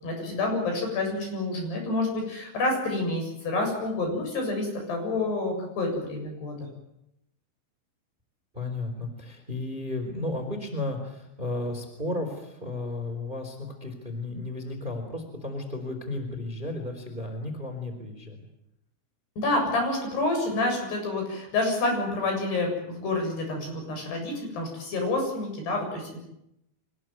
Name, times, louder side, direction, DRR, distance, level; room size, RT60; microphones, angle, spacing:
voice 1, 0.0-6.7 19.4-26.2, left 2 dB, 65° left, 3 dB, 9.5 m, -28 dB
voice 2, 8.5-18.4, left 2 dB, 10° right, 5 dB, 3.6 m, -34 dB
25.0 x 20.5 x 9.5 m, 0.82 s
omnidirectional pair, 5.2 m